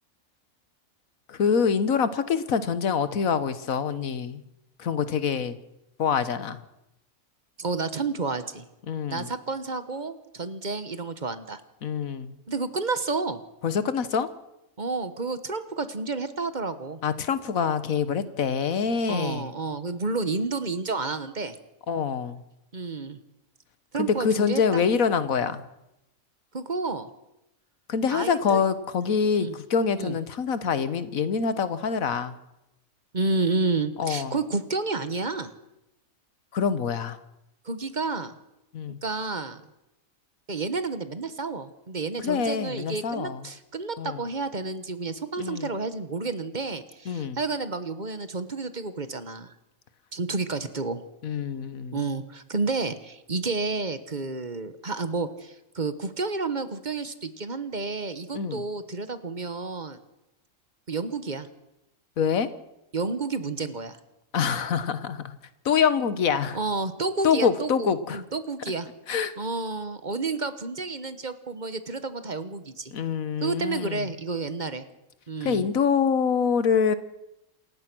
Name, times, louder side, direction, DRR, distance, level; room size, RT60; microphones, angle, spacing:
voice 1, 1.3-4.4 4.8-5.6 6.0-6.6 8.9-9.3 11.8-12.3 13.6-14.3 17.0-19.5 21.9-22.4 23.9-25.6 27.9-32.4 34.0-34.3 36.5-37.2 38.7-39.0 42.2-43.4 44.0-44.2 45.4-45.7 47.1-47.4 51.2-52.0 58.3-58.6 62.2-62.5 64.3-65.4 65.6-66.6 67.2-68.2 69.1-69.3 72.9-74.1 75.4-76.9, left 6 dB, 85° left, 14 dB, 1.6 m, -25 dB
voice 2, 7.6-8.6 9.1-11.6 12.5-13.4 14.8-17.0 19.1-21.5 22.7-23.2 23.9-24.8 26.5-27.1 28.1-28.6 29.3-29.5 29.9-30.2 33.1-35.5 37.6-38.3 39.0-39.6 40.5-49.5 50.1-51.0 51.9-60.0 60.9-61.5 62.9-64.0 66.5-68.9 69.4-72.9 73.4-74.8 75.3-75.7, right 3 dB, 35° right, 12 dB, 1.3 m, -30 dB
28.0 x 15.0 x 6.2 m, 0.89 s
omnidirectional pair, 1.4 m